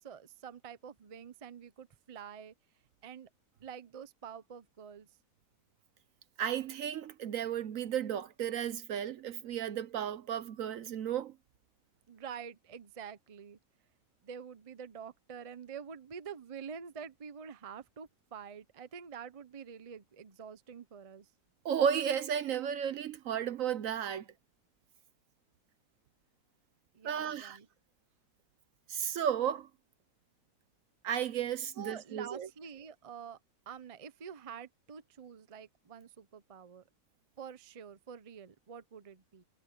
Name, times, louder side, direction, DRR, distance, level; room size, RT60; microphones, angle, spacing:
voice 1, 0.0-2.5 3.0-3.3 3.6-5.1 12.1-13.6 14.2-21.3 26.9-27.7 31.7-33.4 33.7-36.8 37.4-39.4, right 7 dB, 35° right, 0.6 m, -47 dB
voice 2, 6.4-11.3 21.6-24.3 27.0-27.6 28.9-29.7 31.0-32.5, right 8 dB, 65° right, 1.0 m, -33 dB
omnidirectional pair, 1.7 m